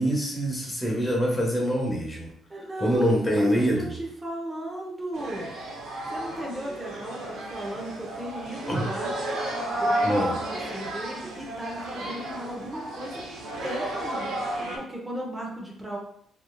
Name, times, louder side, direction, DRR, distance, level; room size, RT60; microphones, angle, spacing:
voice 1, 0.0-2.3 2.8-3.9 8.7-8.8 10.0-10.4, equal, 20° left, -2 dB, 1.0 m, -25 dB
voice 2, 2.5-5.5 6.1-9.1 9.8-13.2 13.6-16.0, right 1 dB, 20° right, -3 dB, 0.8 m, -36 dB
sound 1, 5.1-14.8, right 1 dB, 85° right, 0.8 m, -32 dB
3.5 x 2.7 x 2.3 m, 0.66 s
cardioid pair, 90°, 0 cm